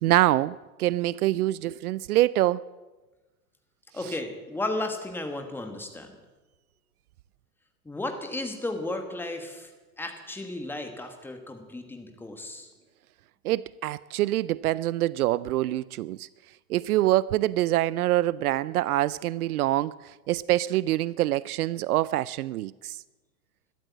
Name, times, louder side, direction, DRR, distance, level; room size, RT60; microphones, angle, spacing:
voice 1, 0.0-2.6 4.0-4.1 13.4-16.3 16.7-23.0, right 15 dB, 70° right, 0.5 m, -25 dB
voice 2, 3.9-6.1 7.8-9.7 10.0-12.7, left 2 dB, 5° left, 1.4 m, -34 dB
13.0 x 13.0 x 8.1 m
hypercardioid pair, 145°, 47 cm